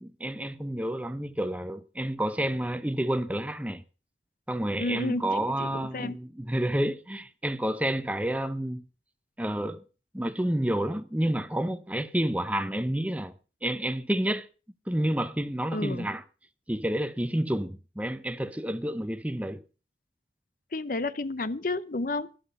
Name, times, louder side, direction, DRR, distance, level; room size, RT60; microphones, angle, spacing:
voice 1, 0.0-3.8 4.5-8.8 9.4-9.8 10.1-13.3 13.6-14.5 14.9-16.2 16.7-19.6, right 1 dB, 10° right, 0.6 m, -29 dB
voice 2, 4.8-5.2 5.6-6.2 15.7-16.1 20.7-22.3, left 2 dB, 50° left, 0.7 m, -31 dB
12.0 x 11.5 x 5.4 m
head